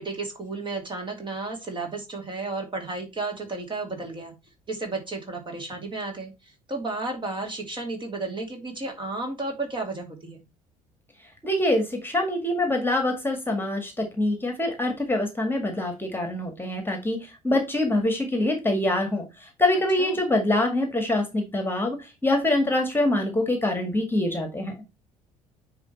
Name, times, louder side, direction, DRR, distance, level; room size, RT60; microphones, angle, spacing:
voice 1, 0.0-4.3 4.7-10.4 20.0-20.2, right 3 dB, 25° right, 3 dB, 2.5 m, -33 dB
voice 2, 11.4-19.2 19.6-24.8, left 1 dB, 10° left, 4 dB, 1.9 m, -25 dB
9.5 x 3.2 x 4.2 m, 0.24 s
figure-of-eight pair, 55°, 19 cm